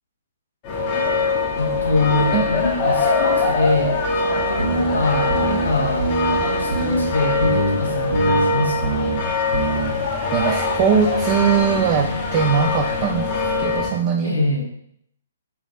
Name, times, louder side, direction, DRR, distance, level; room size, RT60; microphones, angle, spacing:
sound 1, 0.6-13.9, left 3 dB, 35° left, 0.8 m, -23 dB
voice 1, 1.6-9.1 14.2-14.7, left 2 dB, 85° left, -1 dB, 1.0 m, -24 dB
sound 2, 4.6-4.9 5.3-5.7 6.0-6.4 6.7-7.1 7.4-7.8 8.1-8.5 8.8-9.2 9.5-9.9, right 3 dB, 80° right, 0.9 m, -23 dB
voice 2, 10.3-14.4, right 7 dB, 35° right, 0 dB, 0.4 m, -20 dB
3.5 x 3.0 x 3.7 m, 0.70 s
figure-of-eight pair, 130°, 0 cm